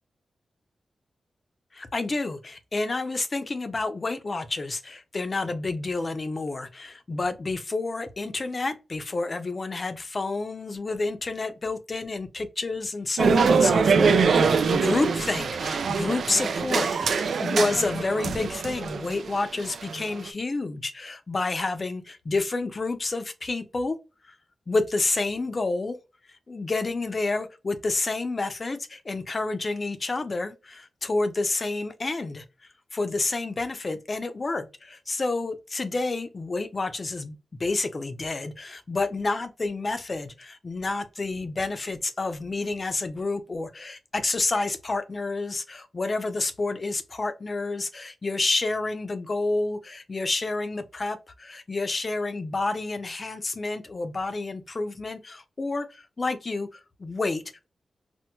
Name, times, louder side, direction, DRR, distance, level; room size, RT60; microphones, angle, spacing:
voice 1, 1.7-24.0 24.3-24.4 24.7-26.0 26.5-32.4 32.9-57.4, left 3 dB, 40° left, 0.5 m, -29 dB
sound 1, 13.2-20.3, right 5 dB, 80° right, 0.3 m, -23 dB
4.3 x 2.1 x 2.2 m
wide cardioid pair, 85°, 0 cm